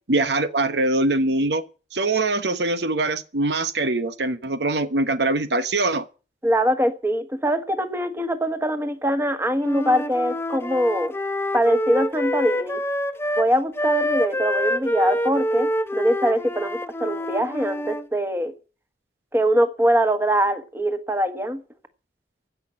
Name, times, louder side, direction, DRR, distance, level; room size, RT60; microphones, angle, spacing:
voice 1, 0.1-1.6 1.9-6.1, right 2 dB, 75° right, 1.1 m, -23 dB
voice 2, 6.4-11.1 11.5-12.8 13.4-18.5 19.3-21.6, equal, 15° right, 1.5 m, -23 dB
Wind instrument woodwind instrument, 9.6-13.5 13.7-18.1, equal, 15° left, 0.7 m, -26 dB
16.0 x 6.1 x 8.8 m
head